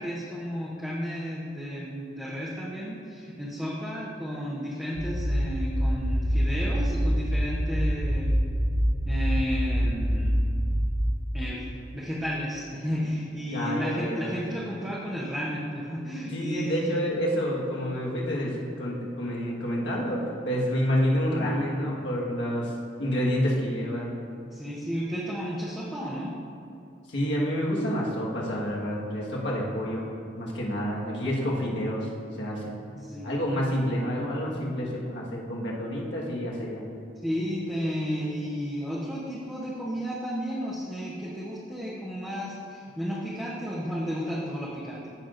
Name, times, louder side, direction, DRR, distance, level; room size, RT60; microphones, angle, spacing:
voice 1, 0.0-8.4 9.0-10.3 11.3-16.7 24.5-26.4 32.9-33.3 37.2-45.1, equal, 5° right, -7 dB, 0.9 m, -33 dB
sound 1, 4.9-11.0, equal, 20° right, 1.4 m, -25 dB
voice 2, 13.5-14.4 16.3-22.7 23.0-24.1 27.1-30.1 30.4-32.7 33.2-36.8, equal, 75° left, -4 dB, 1.6 m, -28 dB
14.5 x 5.9 x 2.6 m, 2.6 s
head